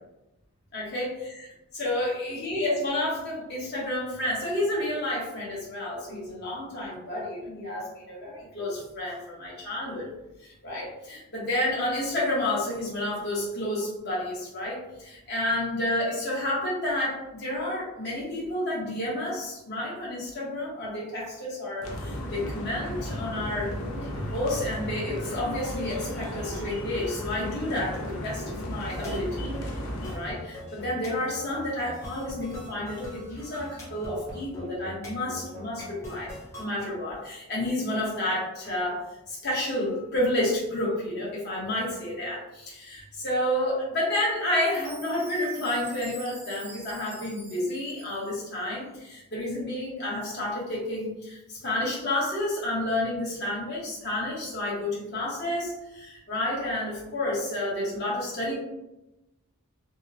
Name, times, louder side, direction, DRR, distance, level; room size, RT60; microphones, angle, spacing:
voice 1, 0.7-1.5 1.7-10.1 10.4-23.7 24.1-29.5 30.1-36.3 36.6-58.5, left 1 dB, 50° left, -5 dB, 0.9 m, -30 dB
sound 1, 21.8-30.2, equal, 70° left, 0.5 m, -35 dB
sound 2, 28.9-36.9, equal, 10° left, 0.5 m, -42 dB
Chime, 44.5-48.8, right 2 dB, 50° right, 0.7 m, -46 dB
2.8 x 2.0 x 2.4 m, 0.95 s
head